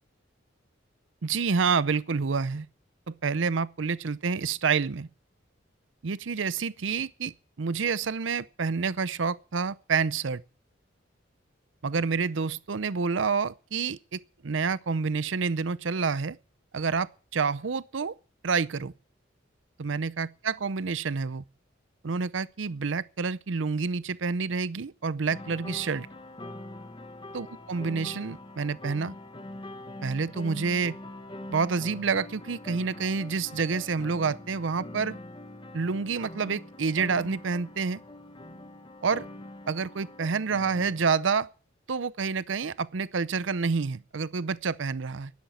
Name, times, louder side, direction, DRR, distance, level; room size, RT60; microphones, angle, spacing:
voice 1, 1.2-2.7 3.1-5.1 6.0-7.3 7.6-10.4 11.8-16.4 16.7-18.2 18.4-18.9 19.8-21.4 22.0-26.1 27.3-29.1 30.0-31.0 31.5-35.2 35.7-38.0 39.0-39.3 39.7-41.5 41.9-45.3, right 5 dB, 75° right, 0.6 m, -28 dB
sound 1, 25.3-41.1, left 1 dB, 25° left, 1.2 m, -43 dB
11.5 x 10.5 x 9.2 m
head